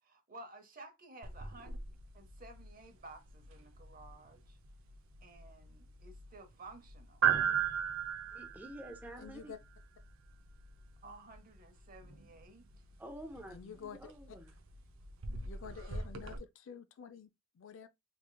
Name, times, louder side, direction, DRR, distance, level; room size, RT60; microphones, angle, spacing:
voice 1, 0.0-1.8 2.1-4.6 5.2-7.2 11.0-12.7, right 2 dB, 40° right, 0.8 m, -54 dB
sound 1, 1.2-16.4, right 8 dB, 65° right, 0.6 m, -39 dB
voice 2, 8.3-9.5 13.0-14.5, equal, 10° right, 0.5 m, -49 dB
voice 3, 9.2-9.6 13.5-14.4 15.4-17.9, left 6 dB, 60° left, 0.4 m, -49 dB
3.8 x 3.1 x 2.2 m
head